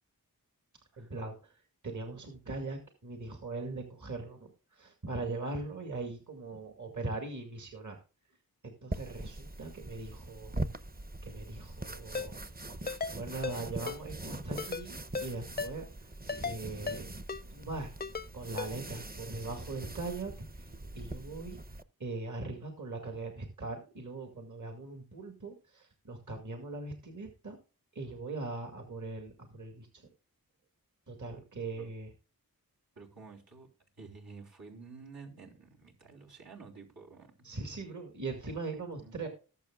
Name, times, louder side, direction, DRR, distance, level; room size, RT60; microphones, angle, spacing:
voice 1, 1.0-1.5 1.8-4.5 4.8-8.0 8.6-10.5 11.2-12.4 13.1-15.8 16.4-17.1 17.5-17.9 18.3-20.7 20.9-21.6 22.0-27.6 28.0-30.0 31.1-32.1 37.4-39.3, right 3 dB, 55° right, 4 dB, 2.1 m, -40 dB
sound 1, 8.9-21.8, right 2 dB, 25° right, 0.7 m, -42 dB
Ringtone, 12.1-12.3 12.9-13.1 13.4-13.6 13.9-14.0 14.6-14.8 15.1-15.3 15.6-15.7 16.3-16.6 16.9-17.0 17.3-17.4 18.0-18.3 18.6-18.7, left 5 dB, 25° left, 0.4 m, -35 dB
voice 2, 33.0-33.7 34.0-37.4 39.0-39.3, right 4 dB, 85° right, -3 dB, 3.5 m, -51 dB
19.0 x 7.2 x 2.4 m, 0.34 s
wide cardioid pair, 65°, 36 cm